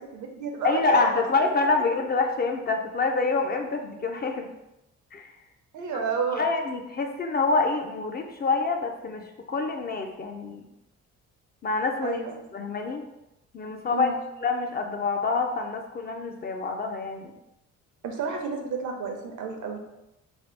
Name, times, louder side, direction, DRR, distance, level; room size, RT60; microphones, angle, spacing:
voice 1, 0.0-1.1 5.7-6.5 12.0-12.4 13.9-14.2 18.0-19.8, right 5 dB, 75° right, 3 dB, 0.7 m, -31 dB
voice 2, 0.6-4.5 5.1-5.3 6.4-10.7 11.6-12.2 12.5-13.1 13.5-14.1 14.4-17.3, left 3 dB, 35° left, 4 dB, 0.4 m, -26 dB
2.8 x 2.3 x 3.2 m, 0.89 s
cardioid pair, 90°, 30 cm